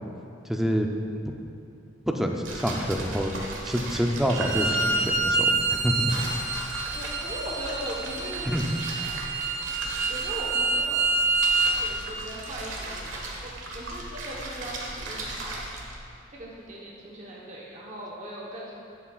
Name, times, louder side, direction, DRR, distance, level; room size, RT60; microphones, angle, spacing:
voice 1, 0.5-0.9 2.1-6.1 8.4-8.6, equal, ahead, 2 dB, 0.5 m, -27 dB
sound 1, 2.4-16.0, right 2 dB, 85° right, 1.3 m, -37 dB
Bowed string instrument, 4.3-11.8, right 3 dB, 70° right, 0.9 m, -27 dB
voice 2, 6.8-8.5 9.7-11.0 11.8-15.6 16.3-18.7, equal, 40° right, -4 dB, 1.0 m, -39 dB
13.5 x 8.2 x 2.4 m, 2.6 s
head